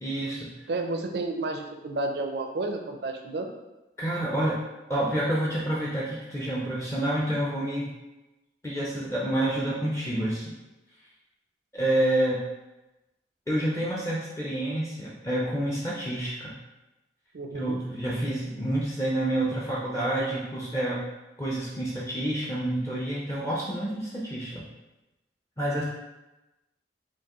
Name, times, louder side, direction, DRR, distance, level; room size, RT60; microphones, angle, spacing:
voice 1, 0.0-0.5 4.0-4.6 4.9-7.9 8.6-10.5 11.7-12.5 13.5-16.5 17.5-21.0 21.4-24.6 25.6-25.8, right 1 dB, 15° left, -5 dB, 0.5 m, -28 dB
voice 2, 0.7-3.5 17.3-17.8, right 2 dB, 65° right, 4 dB, 0.4 m, -31 dB
4.5 x 2.6 x 2.9 m, 1.0 s
head